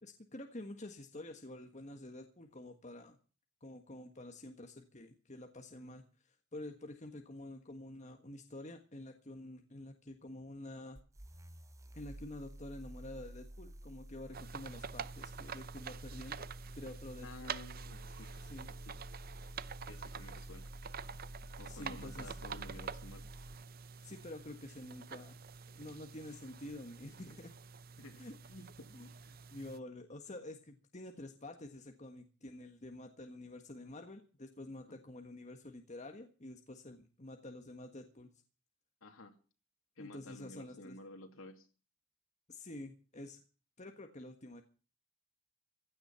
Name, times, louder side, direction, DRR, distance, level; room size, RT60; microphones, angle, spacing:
voice 1, 0.0-3.2 3.6-11.0 11.9-16.5 16.7-17.5 18.4-18.7 21.6-22.3 24.0-25.3 25.7-27.5 28.2-28.3 28.9-29.1 29.5-38.3 40.0-41.0 42.5-43.4 43.8-44.6, left 1 dB, 35° left, 5 dB, 1.5 m, -48 dB
sound 1, 11.0-23.6, right 1 dB, 15° right, 0.8 m, -51 dB
sound 2, 14.3-29.8, right 6 dB, 45° right, 0.7 m, -47 dB
voice 2, 17.2-19.0 19.9-20.7 21.6-23.2 28.0-28.9 29.2-29.4 34.9-35.0 39.0-39.3 40.0-41.7, left 2 dB, 85° left, 4 dB, 2.6 m, -53 dB
16.5 x 11.5 x 5.7 m, 0.38 s
head